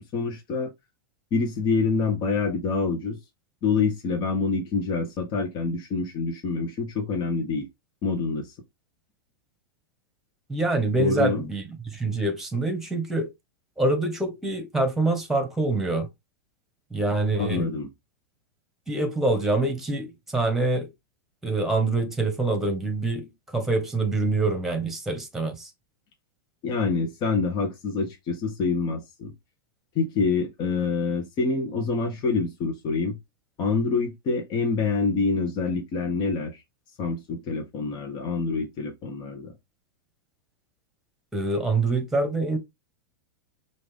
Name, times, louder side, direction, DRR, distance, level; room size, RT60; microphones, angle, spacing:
voice 1, 0.1-0.7 1.3-3.2 3.6-7.7 8.0-8.5 10.9-11.4 17.4-17.9 26.6-29.3 29.9-33.2 33.6-36.6 37.0-39.5, left 4 dB, 35° left, 1.2 m, -26 dB
voice 2, 10.5-13.3 13.8-16.1 16.9-17.7 18.9-20.9 21.4-25.7 41.3-42.6, right 2 dB, 5° right, 1.4 m, -25 dB
5.6 x 2.7 x 3.6 m
hypercardioid pair, 125°, 12 cm